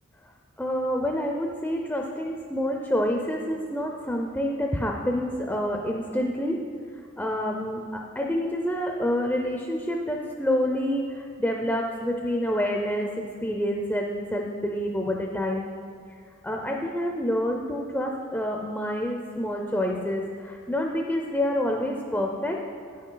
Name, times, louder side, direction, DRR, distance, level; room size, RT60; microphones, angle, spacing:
voice 1, 0.6-6.6 6.9-15.7 16.4-22.6, equal, 5° left, 1 dB, 0.4 m, -28 dB
9.4 x 6.5 x 3.8 m, 2.3 s
head